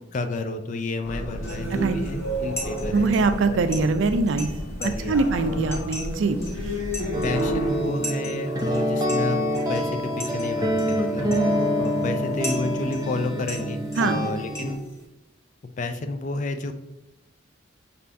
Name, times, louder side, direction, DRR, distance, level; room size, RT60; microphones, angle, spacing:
voice 1, 0.1-3.1 3.7-3.8 4.8-5.2 5.4-5.8 7.2-14.8 15.8-16.7, left 2 dB, 40° left, 7 dB, 0.3 m, -31 dB
sound 1, 1.0-7.8, equal, 85° left, 1.2 m, -31 dB
sound 2, 1.5-15.1, equal, 15° left, 0.9 m, -40 dB
voice 2, 2.9-4.5 5.1-6.4 14.0-14.2, right 3 dB, 65° right, 9 dB, 0.4 m, -22 dB
sound 3, 7.1-14.7, equal, 20° right, 0.6 m, -26 dB
5.5 x 3.4 x 2.6 m, 0.92 s
head